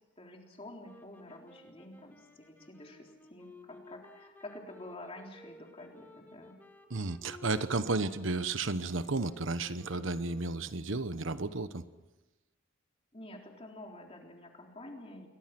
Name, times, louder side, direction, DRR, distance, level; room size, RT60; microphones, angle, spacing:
voice 1, 0.2-6.6 13.1-15.3, left 1 dB, 30° left, 1 dB, 3.8 m, -49 dB
sound 1, 0.8-10.8, left 1 dB, 10° left, 3.6 m, -56 dB
voice 2, 6.9-11.8, right 3 dB, 70° right, 12 dB, 1.1 m, -33 dB
29.0 x 22.5 x 6.1 m, 1.1 s
head